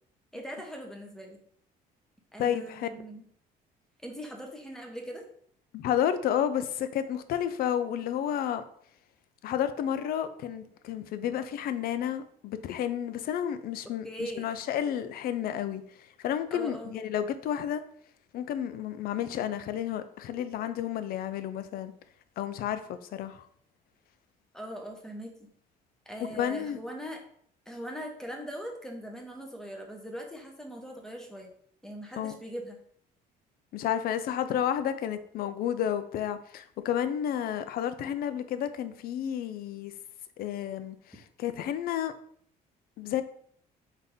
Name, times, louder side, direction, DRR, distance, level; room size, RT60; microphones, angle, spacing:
voice 1, 0.3-1.4 2.3-3.2 4.0-5.2 14.0-14.5 16.5-17.0 24.5-25.3 26.1-27.2 27.7-31.5 31.8-32.8, equal, 5° left, 1 dB, 0.8 m, -40 dB
voice 2, 2.4-2.9 5.7-8.6 9.4-15.8 16.2-17.8 18.3-21.9 22.4-23.4 26.3-26.8 32.2-32.3 33.7-39.9 40.4-42.1 43.0-43.2, left 10 dB, 65° left, 11 dB, 0.4 m, -31 dB
4.0 x 2.7 x 3.5 m, 0.63 s
cardioid pair, 110°, 17 cm